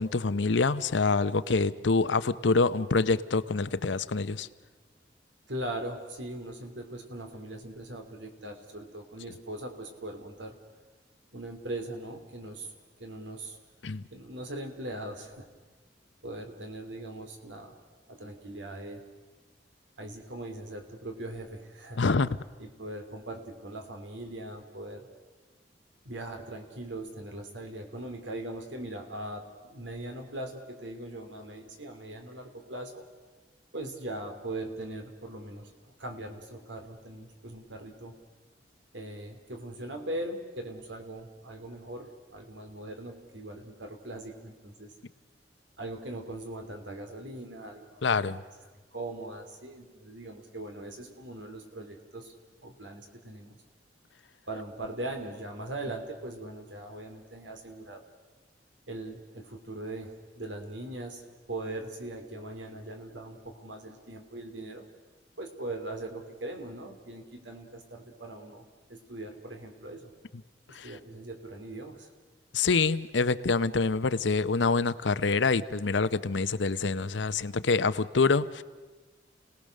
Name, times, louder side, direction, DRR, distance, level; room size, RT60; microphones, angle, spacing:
voice 1, 0.0-4.5 13.8-14.0 22.0-22.3 48.0-48.4 70.7-70.9 72.5-78.6, left 4 dB, 85° left, 14 dB, 0.7 m, -26 dB
voice 2, 5.5-10.6 11.3-12.7 13.0-13.6 14.1-15.5 16.2-17.8 18.1-19.1 20.0-22.0 22.6-25.1 26.0-33.0 33.7-38.2 38.9-44.9 45.8-48.3 48.9-52.3 52.6-53.6 54.5-58.0 58.9-61.2 61.5-64.9 65.4-70.1 70.8-72.1, right 1 dB, 90° right, 5 dB, 3.0 m, -40 dB
30.0 x 18.5 x 6.5 m, 1.3 s
head